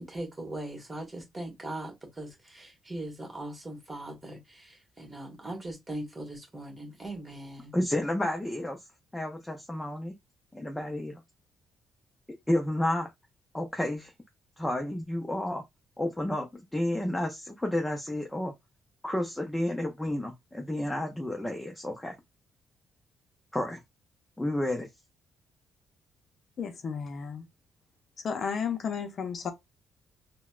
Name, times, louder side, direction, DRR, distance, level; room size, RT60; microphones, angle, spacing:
voice 1, 0.0-7.7, right 1 dB, 20° right, 1.4 m, -40 dB
voice 2, 7.7-8.9 9.1-10.2 10.5-11.2 12.5-13.1 13.5-14.1 14.6-15.6 16.0-18.5 19.0-22.2 23.5-23.8 24.4-24.9, left 1 dB, 10° left, 0.6 m, -31 dB
voice 3, 26.6-27.4 28.2-29.5, left 6 dB, 55° left, 0.6 m, -33 dB
3.9 x 2.1 x 2.4 m
cardioid pair, 90°, 0 cm